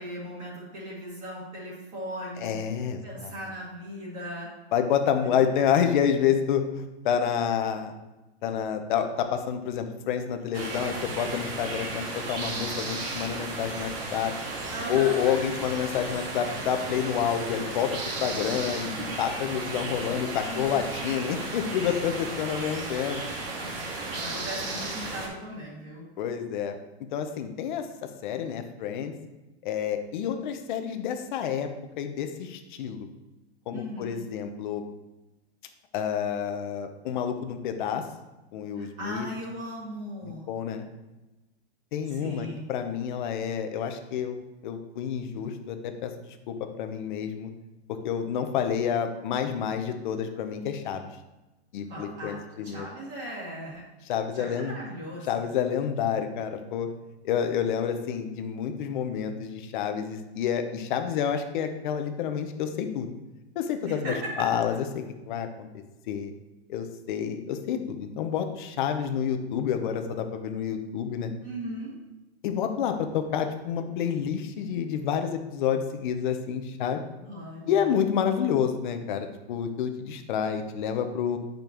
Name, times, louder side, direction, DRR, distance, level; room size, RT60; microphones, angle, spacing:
voice 1, 0.0-2.5 3.0-4.5 5.4-5.5 14.7-15.5 20.5-20.8 21.1-21.2 24.1-26.1 33.7-34.2 38.8-40.5 42.1-42.7 51.9-53.8 54.3-55.5 63.8-64.3 71.4-71.9 77.2-77.9, equal, 25° right, -6 dB, 2.1 m, -38 dB
voice 2, 2.4-3.3 4.7-7.9 8.4-14.3 14.9-23.2 26.2-26.8 27.1-29.1 29.6-31.7 32.0-33.1 33.7-34.8 35.9-38.0 38.5-39.3 40.2-40.8 41.9-44.4 44.6-47.5 48.0-51.0 51.7-52.9 54.1-54.8 55.2-56.9 57.2-63.1 63.5-65.7 66.1-66.3 66.7-71.3 72.4-77.0 77.7-81.4, left 8 dB, 50° left, 7 dB, 0.8 m, -29 dB
sound 1, 10.5-25.3, right 3 dB, 60° right, 1.8 m, -34 dB
8.9 x 5.2 x 3.0 m, 1.1 s
supercardioid pair, 160°, 32 cm